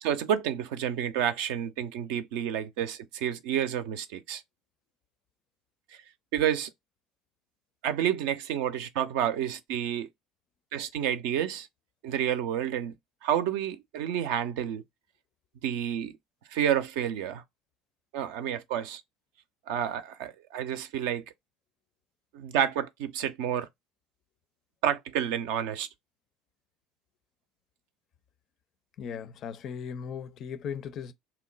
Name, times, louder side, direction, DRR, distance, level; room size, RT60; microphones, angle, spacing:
voice 1, 0.0-4.4 6.3-6.7 7.8-10.1 10.7-11.7 12.0-12.9 13.2-14.8 15.6-16.1 16.5-17.4 18.1-19.0 19.7-21.2 22.3-23.7 24.8-25.9, right 10 dB, 60° right, 0.5 m, -29 dB
voice 2, 29.0-31.1, left 7 dB, 45° left, 0.5 m, -37 dB
2.8 x 2.1 x 3.8 m
figure-of-eight pair, 65°, 0 cm